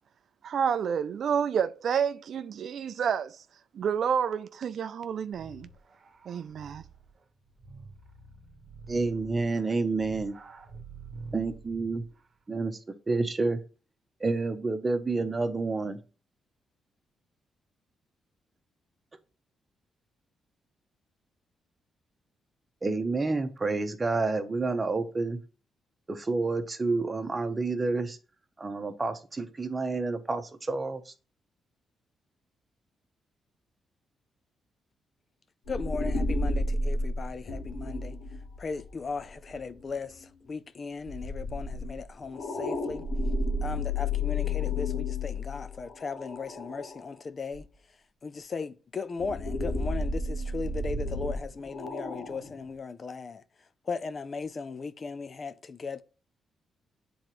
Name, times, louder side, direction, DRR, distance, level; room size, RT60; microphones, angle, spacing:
voice 1, 0.4-3.4 3.7-5.7 6.3-6.8, right 7 dB, 65° right, 0.4 m, -29 dB
sound 1, 5.3-12.2, right 4 dB, 50° right, 1.0 m, -47 dB
voice 2, 8.9-10.3 11.3-12.0 12.5-12.8 13.1-13.6 14.2-16.0 22.8-25.4 26.1-28.2 28.6-31.1, right 3 dB, 25° right, 0.9 m, -29 dB
sound 2, 35.7-39.9 41.1-47.1 47.5-47.6 49.2-52.6, left 2 dB, 85° left, 1.3 m, -32 dB
voice 3, 35.7-38.2 38.6-43.1 43.6-47.7 48.2-53.4 53.9-56.0, left 4 dB, 45° left, 0.5 m, -37 dB
8.6 x 3.9 x 3.1 m
cardioid pair, 85°, 0 cm